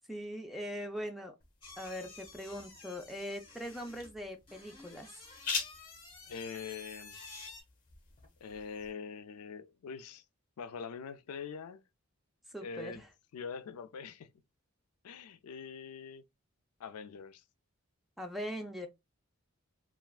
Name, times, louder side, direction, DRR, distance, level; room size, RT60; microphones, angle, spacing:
voice 1, 0.1-1.3 1.8-5.3 12.5-13.1 18.2-18.9, equal, ahead, 0.4 m, -41 dB
sound 1, 1.4-8.9, left 5 dB, 40° left, 0.9 m, -45 dB
sound 2, 1.6-7.6, left 3 dB, 20° left, 1.4 m, -51 dB
voice 2, 6.3-7.2 8.4-10.2 10.6-11.8 12.6-13.0 13.3-14.3 15.0-16.2 16.8-17.4, left 6 dB, 90° left, 0.4 m, -43 dB
3.3 x 2.4 x 2.3 m
head